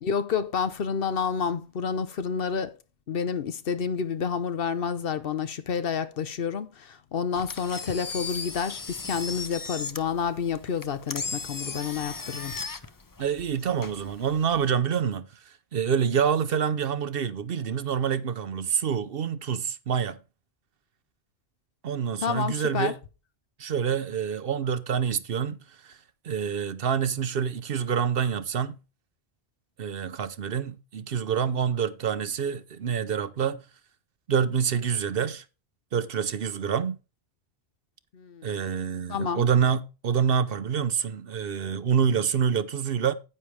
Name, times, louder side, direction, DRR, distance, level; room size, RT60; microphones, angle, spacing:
voice 1, 0.0-2.8 3.1-12.6 22.2-22.9 38.1-38.5 39.1-39.4, left 6 dB, 60° left, 0.9 m, -29 dB
Engine, 7.3-14.7, left 4 dB, 25° left, 0.4 m, -37 dB
voice 2, 13.2-20.2 21.8-23.0 23.6-26.0 26.2-28.8 29.8-33.6 34.3-35.4 35.9-37.0 38.4-43.1, right 7 dB, 60° right, 0.9 m, -27 dB
9.7 x 8.7 x 3.3 m
omnidirectional pair, 1.1 m